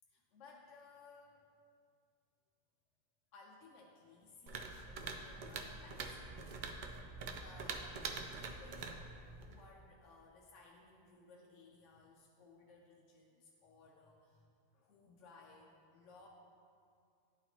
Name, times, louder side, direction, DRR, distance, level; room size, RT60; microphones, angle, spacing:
voice 1, 0.1-1.5 3.3-6.5 7.0-16.3, left 3 dB, 70° left, -1 dB, 0.9 m, -60 dB
sound 1, 4.5-9.6, right 4 dB, 75° right, 0.4 m, -45 dB
10.5 x 4.0 x 2.9 m, 2.4 s
omnidirectional pair, 1.4 m